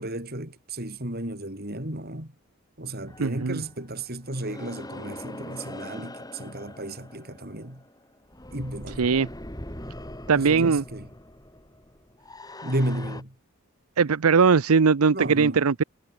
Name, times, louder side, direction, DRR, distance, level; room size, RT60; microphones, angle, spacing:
voice 1, 0.0-2.3 2.8-7.8 8.5-9.0 10.3-11.1 12.6-13.3 15.1-15.6, right 1 dB, 45° right, 4.8 m, -33 dB
sound 1, 3.1-13.2, left 1 dB, 15° left, 6.1 m, -42 dB
voice 2, 3.2-3.6 9.0-9.3 10.3-10.8 14.0-15.8, right 5 dB, 85° right, 0.6 m, -20 dB
head